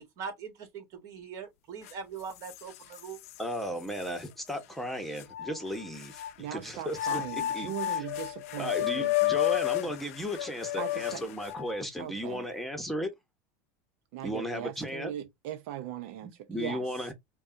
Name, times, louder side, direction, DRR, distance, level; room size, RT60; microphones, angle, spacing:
voice 1, 0.2-3.2, right 6 dB, 50° right, 1.7 m, -41 dB
sound 1, 1.9-2.0 2.4-3.4 4.0-4.1 5.2-6.3 6.9-11.8, left 15 dB, 85° left, 0.6 m, -31 dB
voice 2, 3.4-8.1 8.6-13.1 14.2-15.1 16.2-17.1, equal, ahead, 1.0 m, -35 dB
voice 3, 6.4-9.1 10.8-11.2 12.0-12.4 14.1-16.8, right 11 dB, 70° right, 0.6 m, -39 dB
5.3 x 2.3 x 2.7 m
supercardioid pair, 135°, 8 cm